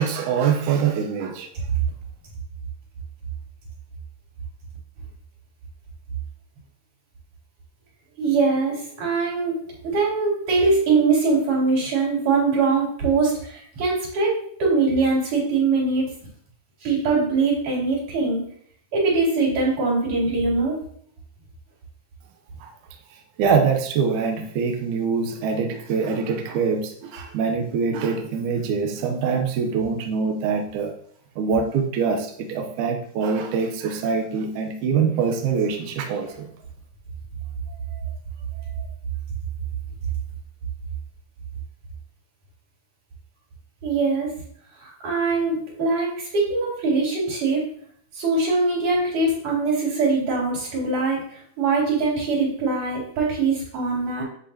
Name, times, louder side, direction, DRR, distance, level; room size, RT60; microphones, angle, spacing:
voice 1, 0.0-1.5 22.6-22.7 23.4-30.9 31.4-36.5, right 6 dB, 75° right, 3 dB, 1.8 m, -24 dB
voice 2, 8.2-9.6 9.8-14.3 14.6-16.1 16.8-18.4 18.9-20.8 38.0-38.1 43.8-44.3 44.8-47.6 48.1-51.2 51.6-54.2, right 3 dB, 55° right, -5 dB, 4.5 m, -22 dB
8.6 x 8.0 x 2.8 m, 0.63 s
omnidirectional pair, 4.4 m